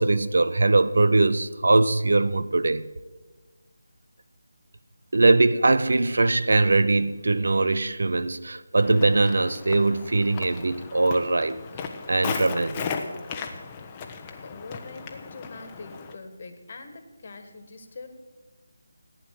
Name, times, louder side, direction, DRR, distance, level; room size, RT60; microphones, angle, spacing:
voice 1, 0.0-2.8 5.1-11.6 12.1-12.9, right 2 dB, 60° right, 0.6 m, -21 dB
Walk footsteps, 8.8-16.2, left 5 dB, 20° left, 1.0 m, -36 dB
voice 2, 14.4-18.1, left 3 dB, 40° left, 1.7 m, -43 dB
15.0 x 9.5 x 7.6 m
figure-of-eight pair, 155°, 0 cm